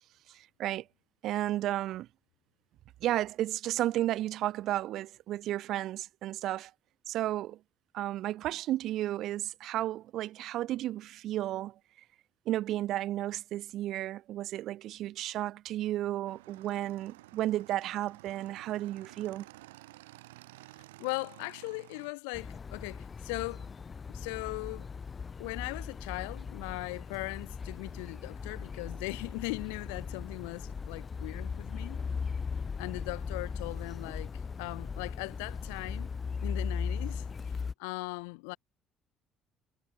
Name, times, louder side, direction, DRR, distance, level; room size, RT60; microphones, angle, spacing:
voice 1, 0.3-0.8 1.2-2.1 3.0-6.7 7.1-7.6 7.9-11.7 12.5-19.5, right 14 dB, 65° right, 0.4 m, -33 dB
Motorcycle / Engine, 16.3-22.1, right 19 dB, 90° right, 2.5 m, -53 dB
voice 2, 21.0-23.7 24.1-24.9 25.4-32.0 32.8-34.3 34.6-36.1 36.4-38.6, left 32 dB, 85° left, 0.4 m, -39 dB
sound 1, 22.3-37.7, left 5 dB, 35° left, 1.8 m, -38 dB
hypercardioid pair, 60°, 0 cm